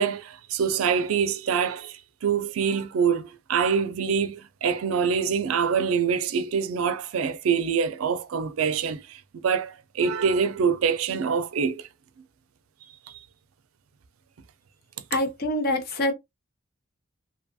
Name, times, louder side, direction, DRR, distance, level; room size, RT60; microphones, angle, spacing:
voice 1, 0.0-11.8, right 6 dB, 90° right, 0.4 m, -25 dB
voice 2, 15.1-16.1, left 1 dB, 50° left, 0.7 m, -25 dB
2.7 x 2.3 x 2.6 m
head